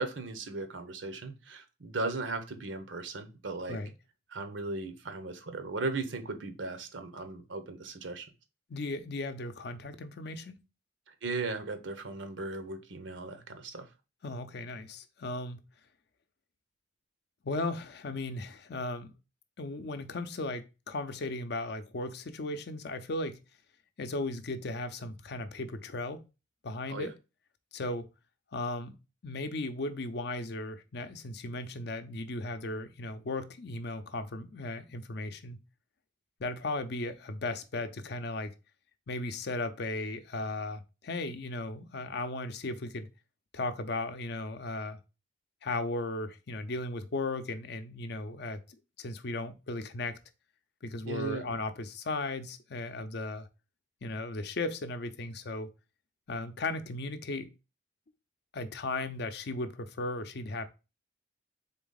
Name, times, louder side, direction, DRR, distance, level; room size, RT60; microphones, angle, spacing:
voice 1, 0.0-3.8 4.3-8.3 11.2-13.9 26.9-27.1 51.1-51.4, right 3 dB, 85° right, 0.9 m, -37 dB
voice 2, 8.7-10.6 14.2-15.6 17.4-19.1 19.6-23.4 24.0-26.2 26.6-27.1 27.7-28.1 28.5-29.0 29.2-35.6 36.4-38.5 39.1-43.1 43.5-45.0 45.6-50.2 50.8-53.5 54.0-55.7 56.3-57.5 58.5-60.7, left 2 dB, 60° left, 0.5 m, -36 dB
3.9 x 3.5 x 3.9 m
head